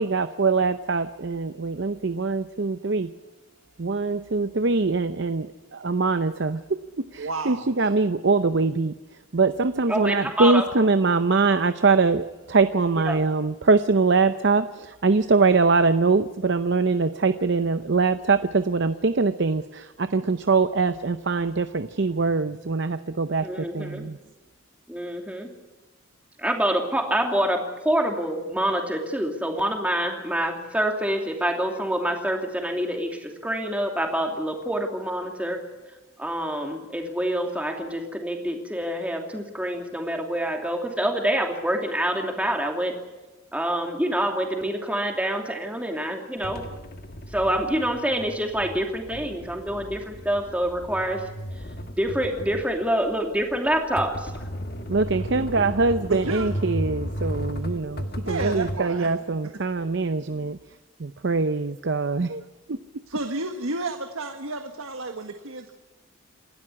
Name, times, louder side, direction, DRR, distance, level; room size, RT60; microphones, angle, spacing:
voice 1, 0.0-3.1 3.8-8.9 9.3-24.2 54.9-60.6 61.0-62.4 62.7-62.8, right 4 dB, 55° right, 11 dB, 0.7 m, -23 dB
voice 2, 7.2-7.9 56.1-56.5 58.2-59.1 63.1-65.7, right 3 dB, 85° right, 6 dB, 1.6 m, -31 dB
voice 3, 9.9-10.6 13.1-13.2 23.4-24.0 24.9-25.5 26.4-35.6 36.2-42.9 43.5-46.7 47.3-51.2 51.9-54.3, right 1 dB, 5° right, 3 dB, 2.8 m, -26 dB
sound 1, 46.4-58.8, equal, 45° left, 1.7 m, -34 dB
28.0 x 12.5 x 9.7 m, 1.1 s
head